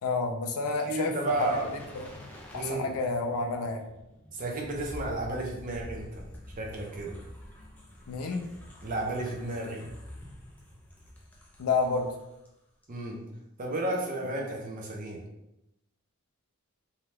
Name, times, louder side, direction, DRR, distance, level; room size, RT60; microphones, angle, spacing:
voice 1, 0.0-2.2 2.5-3.8 8.1-8.4 11.6-12.1, left 4 dB, 75° left, 5 dB, 0.4 m, -30 dB
voice 2, 0.8-1.7 2.5-2.9 4.3-6.2 6.6-7.2 8.8-9.8 12.9-13.2 13.6-15.2, right 2 dB, 40° right, -1 dB, 0.6 m, -32 dB
sound 1, 1.3-12.5 12.8-13.0, left 1 dB, 5° left, 0.4 m, -47 dB
2.7 x 2.2 x 3.3 m, 0.88 s
head